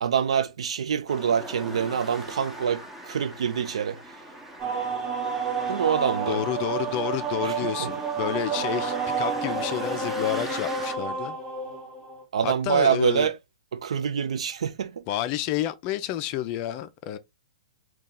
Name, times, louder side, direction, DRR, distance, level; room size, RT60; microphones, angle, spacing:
voice 1, 0.0-4.0 5.7-6.4 7.4-7.5 7.8-7.9 12.3-13.3 13.7-15.0, right 7 dB, 70° right, 0.5 m, -25 dB
sound 1, 1.1-11.0, right 1 dB, 10° right, 0.7 m, -40 dB
sound 2, 4.6-12.2, right 5 dB, 30° right, 0.9 m, -30 dB
voice 2, 6.2-11.4 12.4-13.3 15.1-17.2, left 12 dB, 40° left, 0.4 m, -30 dB
2.8 x 2.3 x 3.7 m
hypercardioid pair, 120°, 3 cm